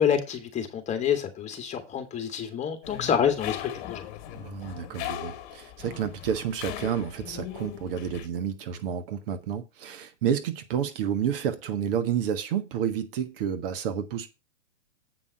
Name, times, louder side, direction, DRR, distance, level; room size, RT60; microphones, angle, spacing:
voice 1, 0.0-4.1, left 8 dB, 20° left, 2.3 m, -27 dB
sound 1, 2.8-8.3, left 12 dB, 40° left, 1.6 m, -39 dB
voice 2, 4.3-14.3, right 8 dB, 50° right, 1.4 m, -30 dB
8.5 x 5.4 x 6.6 m
hypercardioid pair, 120°, 36 cm